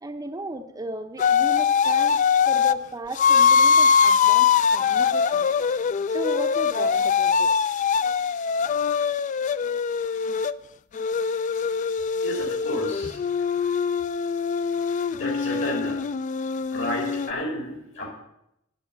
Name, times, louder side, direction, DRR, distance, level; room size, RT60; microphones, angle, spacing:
voice 1, 0.0-5.5 6.1-7.7, right 1 dB, 15° right, 6 dB, 0.6 m, -35 dB
sound 1, 1.2-2.8 3.2-10.5 10.9-17.3, left 6 dB, 35° left, 0.3 m, -22 dB
voice 2, 12.2-13.2 15.1-16.0 16.7-18.1, equal, 65° left, 1 dB, 3.7 m, -31 dB
8.8 x 8.2 x 7.4 m, 0.83 s
head